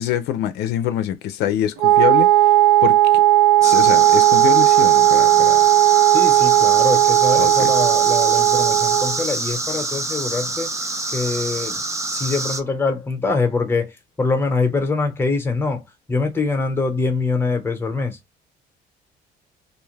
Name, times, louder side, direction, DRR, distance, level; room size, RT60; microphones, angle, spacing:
voice 1, 0.0-2.5 2.8-3.2 3.6-5.7 7.4-7.7, left 11 dB, 80° left, 0.4 m, -25 dB
Wind instrument woodwind instrument, 1.8-9.2, right 14 dB, 75° right, 0.5 m, -15 dB
sound 1, 3.6-12.6, right 2 dB, 15° right, 0.6 m, -26 dB
voice 2, 6.0-10.7 11.1-11.8 12.1-15.8 16.1-18.2, left 3 dB, 15° left, 0.9 m, -24 dB
2.5 x 2.2 x 3.2 m
cardioid pair, 110°, 17 cm